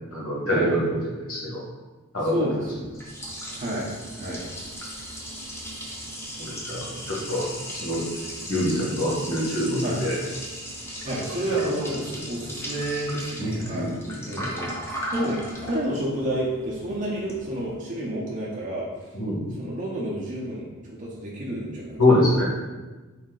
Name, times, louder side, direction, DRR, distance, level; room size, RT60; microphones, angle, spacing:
voice 1, 0.1-1.0 1.3-1.6 2.1-2.6 6.7-7.5 7.7-8.0 8.5-10.1 11.5-11.7 13.4-14.4 19.1-19.5 22.0-22.4, left 1 dB, 75° left, -5 dB, 1.4 m, -24 dB
voice 2, 2.2-2.8 3.5-3.9 4.2-4.5 6.9-7.0 9.8-10.0 11.0-13.9 14.3-18.9 19.5-22.2, right 1 dB, 40° right, -6 dB, 0.7 m, -30 dB
Liquid, 2.6-17.7, equal, 10° left, 0.7 m, -37 dB
4.1 x 2.7 x 3.7 m, 1.3 s
head